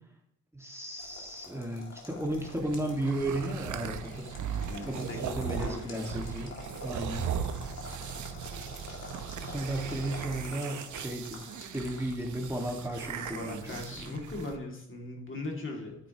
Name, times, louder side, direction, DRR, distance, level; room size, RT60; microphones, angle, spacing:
voice 1, 0.5-4.4 4.9-6.6 6.8-7.3 9.4-14.1, right 1 dB, 10° right, 0 dB, 1.8 m, -34 dB
sound 1, 1.0-14.5, left 3 dB, 55° left, 2.3 m, -48 dB
sound 2, 2.2-14.6, right 8 dB, 70° right, 0.8 m, -38 dB
voice 2, 4.7-6.2 13.3-16.0, left 2 dB, 40° left, 0 dB, 2.3 m, -39 dB
9.4 x 8.4 x 2.9 m, 0.77 s
cardioid pair, 75°, 31 cm